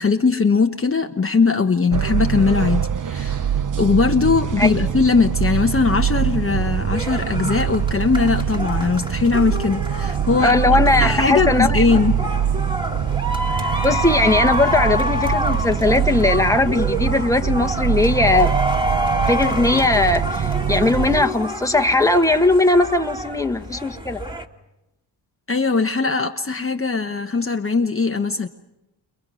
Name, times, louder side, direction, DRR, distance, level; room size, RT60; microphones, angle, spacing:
voice 1, 0.0-3.5 3.8-10.6 11.0-12.3 25.5-28.5, left 4 dB, 25° left, 1.1 m, -20 dB
sound 1, 1.9-21.2, right 9 dB, 40° right, 0.9 m, -23 dB
sound 2, 6.9-24.4, equal, 10° right, 2.3 m, -28 dB
voice 2, 10.4-11.8 13.8-18.5 19.3-24.2, left 2 dB, 5° left, 1.5 m, -19 dB
30.0 x 26.5 x 6.4 m
supercardioid pair, 60°, 49 cm